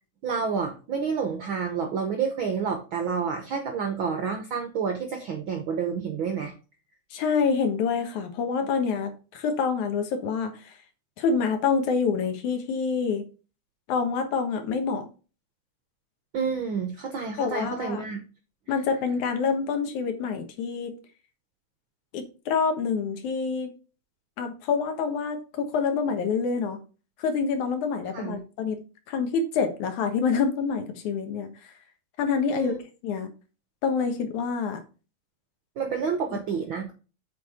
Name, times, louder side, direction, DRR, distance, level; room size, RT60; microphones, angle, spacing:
voice 1, 0.2-6.5 16.3-18.2 28.1-28.4 32.5-32.8 35.8-36.9, right 6 dB, 75° right, 1.1 m, -29 dB
voice 2, 7.1-10.7 11.2-13.2 13.9-15.1 17.4-18.0 18.7-21.0 22.1-23.7 24.4-26.8 27.2-28.8 29.1-31.5 32.2-32.7 33.0-33.3 33.8-34.8 36.3-36.4, left 5 dB, 70° left, 2.7 m, -27 dB
7.9 x 4.7 x 4.8 m
omnidirectional pair, 3.6 m